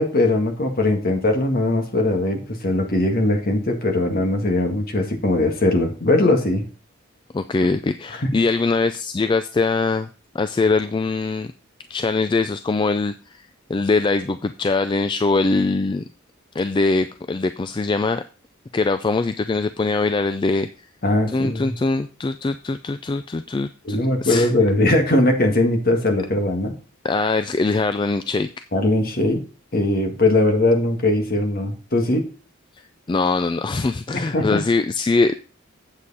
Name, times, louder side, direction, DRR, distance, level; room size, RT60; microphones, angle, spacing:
voice 1, 0.0-6.6 8.2-8.3 21.0-21.7 23.8-26.7 28.7-29.4 29.7-32.3 34.1-34.6, left 2 dB, 45° left, 4 dB, 1.7 m, -20 dB
voice 2, 7.3-10.1 10.3-11.5 11.9-13.1 13.7-16.1 16.5-18.2 18.7-20.7 21.3-24.5 27.0-28.5 33.1-35.3, left 3 dB, 25° left, 10 dB, 0.3 m, -22 dB
8.1 x 7.5 x 4.1 m, 0.36 s
head